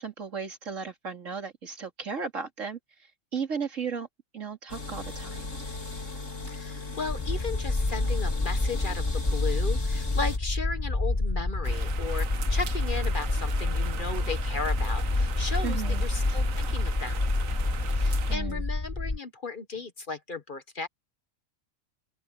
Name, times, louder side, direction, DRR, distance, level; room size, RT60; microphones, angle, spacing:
voice 1, 0.0-2.8 3.3-4.1 4.3-5.5 15.6-16.0 18.3-18.6, right 6 dB, 70° right, 2.9 m, -35 dB
sound 1, 4.7-10.4, left 3 dB, 70° left, 4.3 m, -38 dB
voice 2, 6.5-17.2 18.0-20.9, left 4 dB, 40° left, 1.3 m, -36 dB
sound 2, 7.1-19.2, left 2 dB, 20° left, 1.1 m, -28 dB
sound 3, 11.6-18.4, right 9 dB, 90° right, 1.3 m, -40 dB
open air
omnidirectional pair, 1.4 m